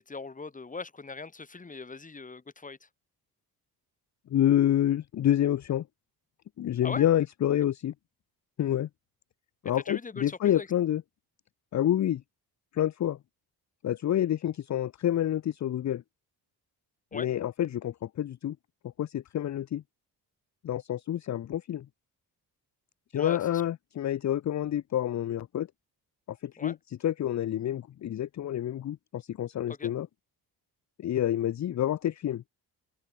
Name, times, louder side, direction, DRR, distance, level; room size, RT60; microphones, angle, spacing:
voice 1, 0.0-2.9 6.8-7.1 9.7-10.7 17.1-17.3 23.1-23.6 26.6-26.8 29.7-29.9, left 4 dB, 20° left, 2.2 m, -40 dB
voice 2, 4.3-5.8 6.6-7.9 8.6-8.9 9.6-11.0 11.7-12.2 12.7-13.2 13.8-16.0 17.1-18.6 19.0-19.8 20.6-21.9 23.1-25.7 26.3-26.7 27.0-30.1 31.0-32.4, left 11 dB, 45° left, 0.6 m, -28 dB
open air
wide cardioid pair, 150°, 40 cm